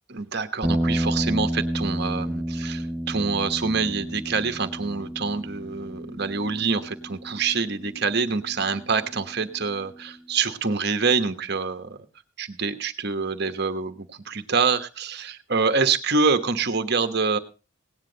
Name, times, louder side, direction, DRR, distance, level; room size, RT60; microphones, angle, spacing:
voice 1, 0.1-12.0 12.4-17.4, right 4 dB, 50° right, 9 dB, 1.2 m, -26 dB
sound 1, 0.6-9.0, equal, ahead, 0.8 m, -30 dB
17.5 x 9.8 x 4.0 m, 0.32 s
head